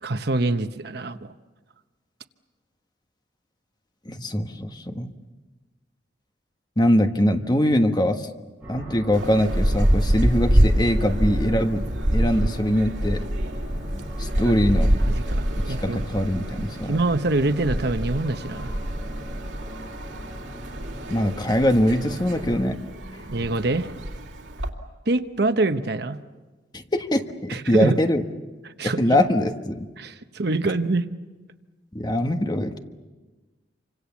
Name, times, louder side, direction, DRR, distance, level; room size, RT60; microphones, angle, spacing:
voice 1, 0.0-1.3 14.4-14.6 15.1-16.0 16.6-18.8 23.3-23.9 25.1-26.2 27.5-28.0 28.8-29.2 30.0-31.1, right 2 dB, 60° right, 10 dB, 1.0 m, -25 dB
voice 2, 4.0-5.1 6.8-8.3 8.7-11.8 12.1-13.2 14.2-14.9 15.7-17.0 21.1-22.8 26.7-28.2 28.8-29.8 31.9-32.8, equal, 25° left, 6 dB, 1.3 m, -22 dB
sound 1, 8.6-22.6, equal, 10° right, 7.6 m, -38 dB
sound 2, 9.1-24.7, equal, 85° right, 2.7 m, -26 dB
28.0 x 25.5 x 7.2 m, 1.3 s
head